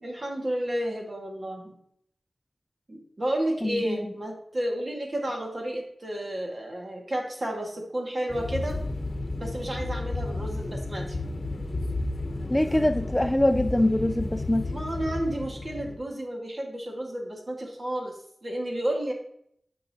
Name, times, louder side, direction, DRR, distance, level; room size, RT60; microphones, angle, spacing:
voice 1, 0.0-1.7 2.9-8.8 9.4-11.2 14.6-19.1, right 1 dB, 45° right, 0 dB, 2.0 m, -31 dB
voice 2, 3.6-4.1 12.5-14.6, left 1 dB, 15° left, 9 dB, 0.4 m, -24 dB
sound 1, 8.3-16.0, left 2 dB, 55° left, 0.9 m, -32 dB
9.3 x 5.4 x 2.9 m, 0.69 s
wide cardioid pair, 70°, 0 cm